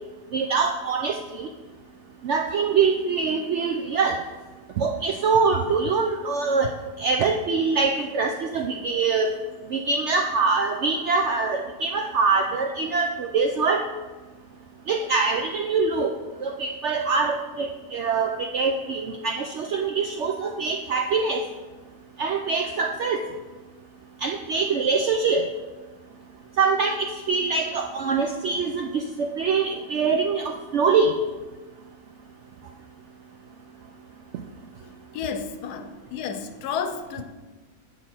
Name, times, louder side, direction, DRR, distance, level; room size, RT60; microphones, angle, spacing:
voice 1, 0.3-1.5 2.2-4.2 4.8-6.7 7.0-9.3 9.7-13.8 14.9-16.1 16.4-21.4 22.2-23.2 24.2-25.5 26.6-31.1, right 4 dB, 75° right, 3 dB, 0.6 m, -24 dB
voice 2, 34.8-37.2, left 6 dB, 80° left, 9 dB, 1.2 m, -32 dB
7.9 x 5.9 x 4.3 m, 1.3 s
omnidirectional pair, 1.7 m